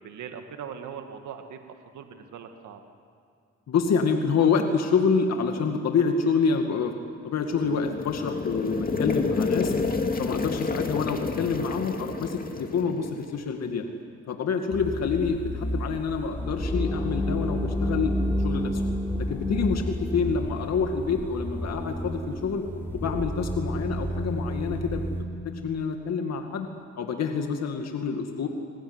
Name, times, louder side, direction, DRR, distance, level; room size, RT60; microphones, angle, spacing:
voice 1, 0.0-1.6 1.9-2.8, right 7 dB, 75° right, 5 dB, 2.1 m, -40 dB
voice 2, 3.7-6.9 7.2-9.7 10.2-13.9 14.3-18.1 18.4-18.8 19.2-22.6 22.9-26.7 27.0-28.5, left 5 dB, 60° left, 4 dB, 2.2 m, -27 dB
Boiling water (shortened version), 7.4-13.4, left 4 dB, 30° left, 2.5 m, -29 dB
sound 1, 14.7-25.2, left 1 dB, 5° left, 3.6 m, -30 dB
29.5 x 20.0 x 9.7 m, 2.3 s
cardioid pair, 90°, 30 cm